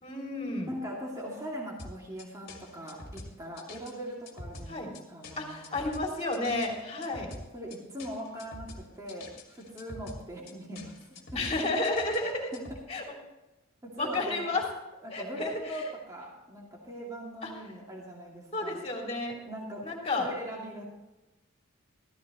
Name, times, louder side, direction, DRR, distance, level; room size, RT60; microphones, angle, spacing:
voice 1, 0.0-0.7 4.7-4.9 5.4-7.3 11.3-12.5 12.9-13.0 14.0-14.6 15.1-15.9 17.4-17.5 18.5-19.4 19.8-20.3, left 2 dB, 30° left, 0 dB, 2.9 m, -31 dB
voice 2, 0.7-5.9 6.9-7.0 7.5-11.4 12.5-12.6 13.8-14.6 15.0-18.8 19.5-19.8 20.2-20.9, equal, 15° right, -3 dB, 2.4 m, -41 dB
sound 1, 1.8-12.8, left 1 dB, 45° left, 2.1 m, -46 dB
14.5 x 14.5 x 3.1 m, 1.0 s
head